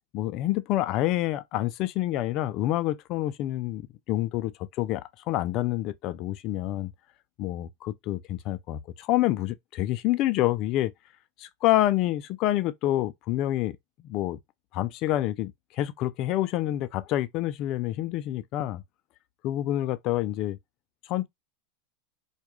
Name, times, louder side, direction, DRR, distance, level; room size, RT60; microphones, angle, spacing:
voice 1, 0.1-6.9 7.4-10.9 11.4-13.8 14.0-14.4 14.7-18.8 19.4-20.6 21.1-21.3, left 14 dB, 50° left, 0.3 m, -27 dB
2.2 x 2.2 x 3.0 m
hypercardioid pair, 90°, 0 cm